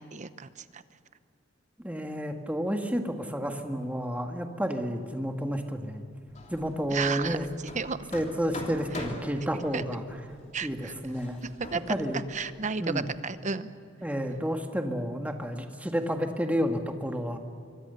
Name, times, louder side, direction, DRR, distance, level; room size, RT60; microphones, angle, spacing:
voice 1, 0.1-0.8 6.9-7.4 7.7-8.0 9.7-9.8 10.5-10.9 11.7-12.0 12.3-13.7, right 5 dB, 40° right, 13 dB, 0.9 m, -32 dB
voice 2, 1.8-6.0 6.5-7.5 8.1-10.0 10.6-11.4 11.9-12.2 12.8-13.1 14.0-17.4, equal, 10° right, 4 dB, 1.7 m, -30 dB
Hammer, 6.3-13.2, left 1 dB, 35° left, 3.0 m, -44 dB
26.0 x 23.5 x 6.9 m, 2.4 s
head